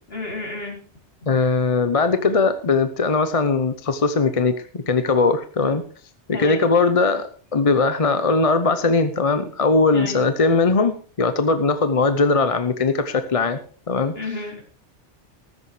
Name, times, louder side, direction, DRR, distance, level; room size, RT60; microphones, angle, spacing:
voice 1, 0.1-0.8 6.3-6.6 9.9-10.2 14.1-14.6, left 2 dB, 60° left, 0 dB, 4.0 m, -31 dB
voice 2, 1.3-5.8 6.3-13.6 13.9-14.1, left 4 dB, 35° left, 10 dB, 0.8 m, -20 dB
14.5 x 13.5 x 3.3 m, 0.41 s
omnidirectional pair, 1.2 m